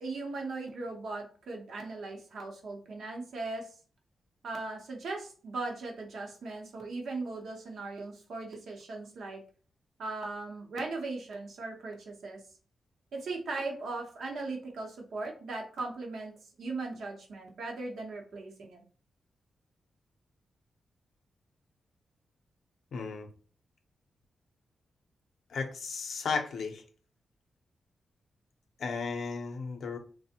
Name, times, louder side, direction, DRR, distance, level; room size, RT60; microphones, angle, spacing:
voice 1, 0.0-3.7 4.4-9.4 10.0-12.4 13.1-18.8, right 3 dB, 80° right, 1 dB, 0.7 m, -38 dB
voice 2, 22.9-23.3 25.5-26.8 28.8-30.0, left 4 dB, 75° left, 5 dB, 0.5 m, -34 dB
3.3 x 2.0 x 2.7 m, 0.40 s
wide cardioid pair, 110°, 0 cm